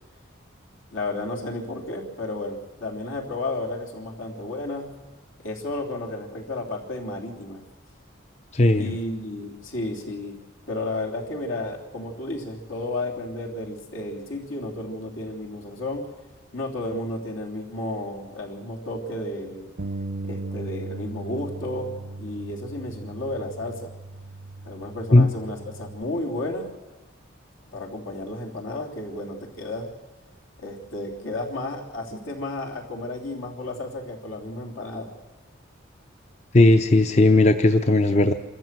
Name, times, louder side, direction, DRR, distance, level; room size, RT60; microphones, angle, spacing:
voice 1, 0.9-4.9 5.4-7.6 8.7-10.4 10.7-16.1 16.5-19.7 20.2-23.9 24.6-26.7 27.7-29.9 30.6-35.1, left 2 dB, 80° left, 0 dB, 3.3 m, -32 dB
voice 2, 8.5-8.9 25.1-25.3 36.5-38.3, left 2 dB, 35° left, 8 dB, 0.6 m, -16 dB
Bass guitar, 19.8-26.0, right 2 dB, 55° right, 0.6 m, -37 dB
26.0 x 14.0 x 7.6 m, 1.2 s
head